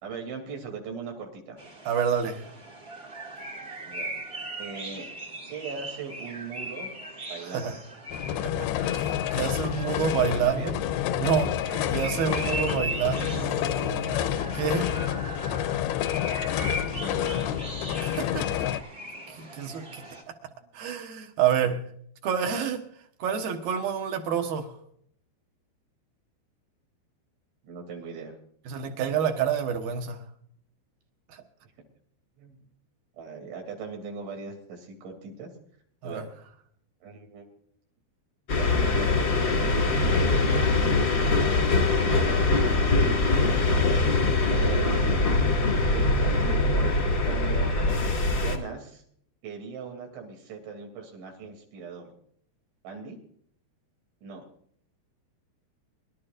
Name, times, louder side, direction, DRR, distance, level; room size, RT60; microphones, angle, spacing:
voice 1, 0.0-1.6 3.8-4.2 4.6-5.1 5.5-6.9 7.3-7.8 10.3-10.7 11.6-12.1 16.9-17.7 20.6-20.7 21.6-21.7 27.6-28.3 31.6-31.7 32.4-32.6 33.1-35.5 36.0-36.3 37.0-37.5 38.6-40.7 41.4-42.3 44.5-45.4 45.9-49.0 49.4-52.1 52.8-53.2 54.2-54.4, right 5 dB, 85° right, 1 dB, 5.2 m, -39 dB
sound 1, 1.6-20.2, right 1 dB, 40° right, 0.8 m, -39 dB
voice 2, 1.9-2.4 7.5-7.7 8.9-10.7 11.2-11.7 11.9-14.9 18.0-18.5 19.4-20.0 20.7-21.8 22.2-22.8 23.2-24.7 28.7-30.2 31.3-31.4 36.0-36.2, right 7 dB, 65° right, 4 dB, 2.7 m, -28 dB
sound 2, 8.1-18.8, left 11 dB, 80° left, 2.4 m, -29 dB
sound 3, 38.5-48.6, left 2 dB, 45° left, 1.2 m, -23 dB
25.0 x 12.0 x 2.5 m, 0.65 s
omnidirectional pair, 5.1 m